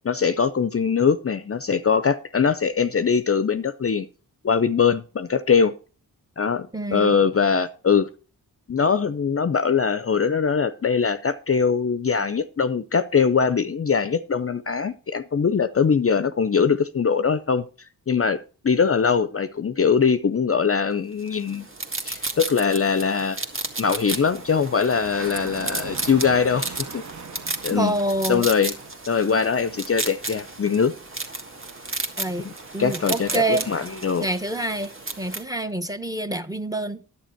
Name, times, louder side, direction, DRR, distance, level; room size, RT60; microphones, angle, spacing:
voice 1, 0.0-4.1 4.4-5.7 6.4-8.1 8.7-17.6 18.1-21.7 22.0-23.4 23.8-27.0 27.6-27.9 28.3-28.7 29.1-30.9 32.4-32.5 32.8-34.3, left 6 dB, 35° left, 0.6 m, -22 dB
voice 2, 6.7-7.2 27.7-28.5 32.2-32.5 32.7-33.7 34.2-37.0, right 2 dB, 10° right, 0.9 m, -27 dB
sound 1, 21.3-35.4, right 2 dB, 30° right, 1.7 m, -33 dB
sound 2, 23.8-34.4, right 5 dB, 50° right, 1.0 m, -42 dB
10.0 x 8.5 x 4.4 m
cardioid pair, 65°, 39 cm